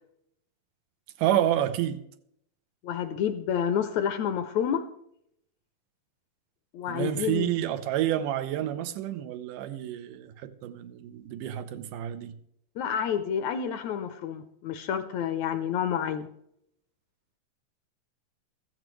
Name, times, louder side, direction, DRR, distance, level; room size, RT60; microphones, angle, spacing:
voice 1, 1.2-2.0 6.9-12.3, right 12 dB, 85° right, 2.4 m, -29 dB
voice 2, 2.8-4.8 6.7-7.5 12.8-16.3, left 8 dB, 75° left, 1.8 m, -29 dB
15.0 x 14.0 x 3.2 m
omnidirectional pair, 3.7 m